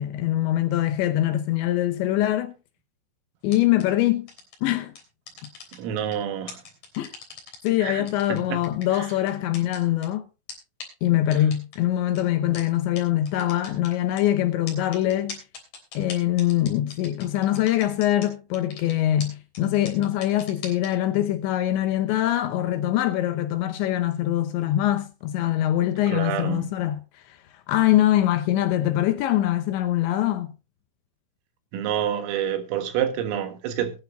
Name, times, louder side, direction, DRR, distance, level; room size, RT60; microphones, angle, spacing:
voice 1, 0.0-2.5 3.4-4.3 4.6-4.9 7.0-7.1 7.6-10.2 11.0-15.4 15.9-27.0 27.3-27.4 27.7-30.5, left 13 dB, 75° left, 2.9 m, -23 dB
sound 1, 3.5-3.8 4.3-4.5 4.9-6.1 6.5-7.7 8.1-10.1 10.5-10.6 10.8-10.9 11.3-11.8 12.1-12.2 12.5-12.6 13.0-13.1 13.3-14.2 14.7-18.3 18.5-18.9 19.2-19.3 19.5-19.6 19.9-20.9, left 5 dB, 40° left, 4.4 m, -39 dB
voice 2, 5.7-6.6 7.8-8.6 8.9-9.1 26.1-26.7 31.7-33.9, right 9 dB, 85° right, 4.2 m, -28 dB
21.0 x 10.5 x 2.7 m
omnidirectional pair, 5.8 m